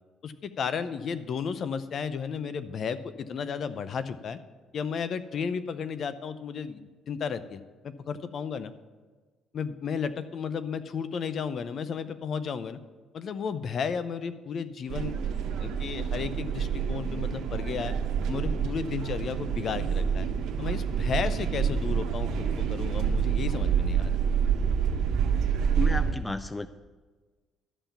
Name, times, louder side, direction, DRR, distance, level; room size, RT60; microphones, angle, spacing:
voice 1, 0.2-4.4 4.7-8.7 9.5-12.8 13.1-15.1 15.6-17.9 18.3-20.3 20.6-24.1, left 6 dB, 50° left, 13 dB, 0.6 m, -33 dB
sound 1, 14.9-26.1, right 7 dB, 75° right, 1.3 m, -27 dB
voice 2, 25.8-26.7, left 2 dB, 10° left, 12 dB, 0.3 m, -32 dB
12.0 x 5.7 x 7.1 m, 1.3 s
cardioid pair, 115°, 0 cm